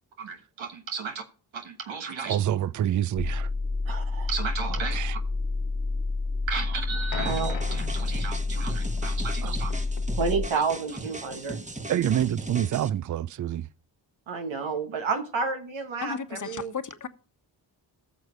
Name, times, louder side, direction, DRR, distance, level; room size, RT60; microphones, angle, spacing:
voice 1, 0.2-1.2 1.5-2.4 3.8-5.0 6.5-9.7 10.2-11.6 14.3-16.7, right 5 dB, 80° right, 1.4 m, -32 dB
voice 2, 2.3-3.5 4.9-5.2 9.4-9.5 11.9-13.7, right 10 dB, 45° right, 0.4 m, -27 dB
sound 1, 3.2-10.5, left 3 dB, 20° left, 1.3 m, -29 dB
sound 2, 7.1-12.5, left 6 dB, 70° left, 1.1 m, -43 dB
sound 3, 7.3-12.9, right 2 dB, 15° right, 1.1 m, -39 dB
voice 3, 16.0-17.1, left 6 dB, 40° left, 1.2 m, -34 dB
14.5 x 6.4 x 5.0 m
cardioid pair, 50°, 46 cm